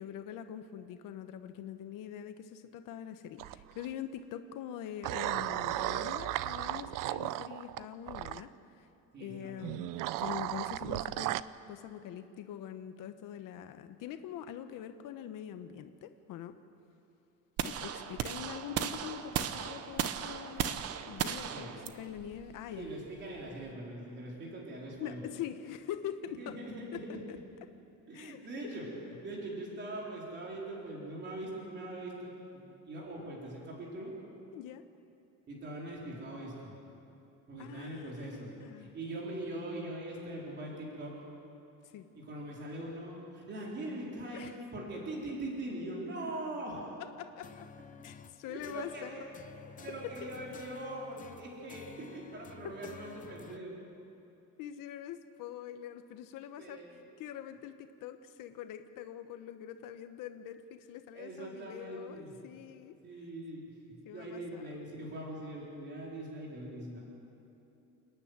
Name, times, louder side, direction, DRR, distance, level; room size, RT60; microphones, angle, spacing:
voice 1, 0.0-8.9 9.2-11.4 11.7-16.5 17.6-21.7 21.9-22.9 25.0-26.5 27.3-27.4 28.1-28.4 34.5-34.8 37.6-39.0 41.8-42.1 44.3-44.6 47.2-47.7 48.0-49.4 50.2-50.3 54.6-56.8 57.2-63.0 64.1-64.8, left 10 dB, 85° left, 8 dB, 1.0 m, -44 dB
sound 1, 3.4-3.9 5.0-8.4 9.6-11.4, right 15 dB, 85° right, 0.6 m, -35 dB
voice 2, 9.1-9.8 21.5-21.9 22.7-25.2 26.4-26.8 28.1-34.2 35.5-36.8 37.5-38.5 38.8-41.2 42.1-46.9 48.4-49.3 49.7-53.8 56.6-57.0 61.1-62.3 63.0-67.0, right 1 dB, 35° right, -3 dB, 3.9 m, -42 dB
sound 2, 17.6-23.7, right 9 dB, 50° right, 0.9 m, -36 dB
sound 3, 47.4-53.6, left 6 dB, 25° left, 0.6 m, -52 dB
29.5 x 9.9 x 9.4 m, 2.8 s
cardioid pair, 175°, 32 cm